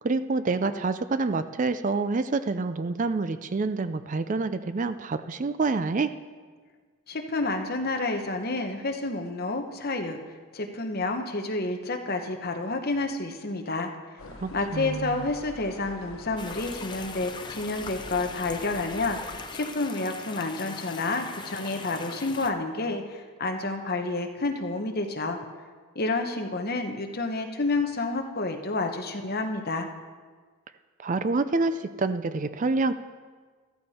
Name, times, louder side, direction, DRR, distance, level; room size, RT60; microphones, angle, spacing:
voice 1, 0.0-6.1 14.4-15.2 31.0-32.9, right 3 dB, 35° right, 11 dB, 0.4 m, -27 dB
voice 2, 7.1-10.2 10.5-13.9 14.5-25.4 25.9-29.9, left 2 dB, 45° left, 4 dB, 1.1 m, -29 dB
sound 1, 14.2-19.4, left 2 dB, 65° left, 1.0 m, -46 dB
sound 2, 16.4-22.5, left 4 dB, 20° left, 0.6 m, -40 dB
14.0 x 13.0 x 4.3 m, 1.5 s
head